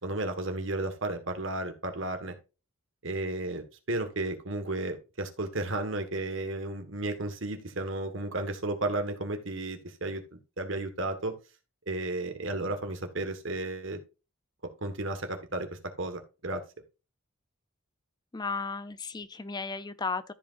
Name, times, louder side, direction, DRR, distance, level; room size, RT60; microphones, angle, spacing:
voice 1, 0.0-2.3 3.0-11.3 11.9-14.0 14.8-16.6, right 2 dB, 60° right, 1.7 m, -33 dB
voice 2, 18.3-20.3, left 4 dB, 20° left, 0.5 m, -34 dB
14.0 x 5.1 x 2.6 m
head